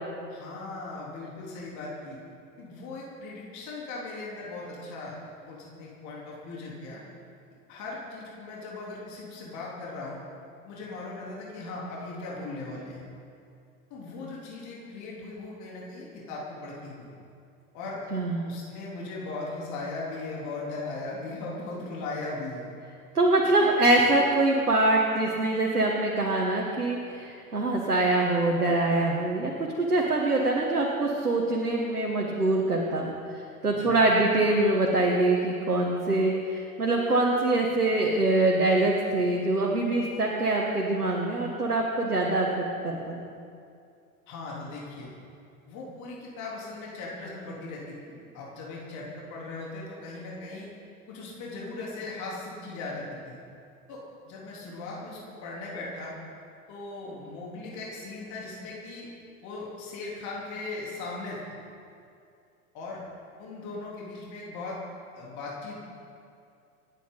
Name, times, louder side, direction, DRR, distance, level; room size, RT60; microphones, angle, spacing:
voice 1, 0.3-2.2 2.6-5.2 5.4-7.0 7.7-10.2 10.6-13.1 13.9-17.1 17.7-18.0 18.4-22.7 23.6-23.7 33.7-33.9 44.3-45.1 45.7-50.7 51.1-53.4 53.9-54.0 54.3-56.1 56.7-59.1 59.4-61.4 62.7-63.0 63.4-64.8 65.1-65.8, left 3 dB, 40° left, -4 dB, 3.7 m, -38 dB
voice 2, 18.1-18.4 23.1-43.2, right 2 dB, 80° right, -1 dB, 1.7 m, -24 dB
27.0 x 10.0 x 4.0 m, 2.4 s
figure-of-eight pair, 85°, 44 cm